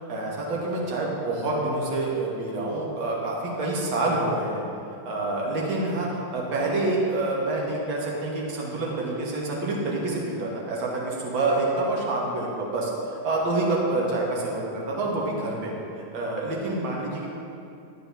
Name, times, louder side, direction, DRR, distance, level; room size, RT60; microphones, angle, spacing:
voice 1, 0.1-4.6 5.0-15.7 16.1-17.3, right 2 dB, 45° right, -4 dB, 2.3 m, -27 dB
10.0 x 6.7 x 6.0 m, 2.6 s
figure-of-eight pair, 90°, 0 cm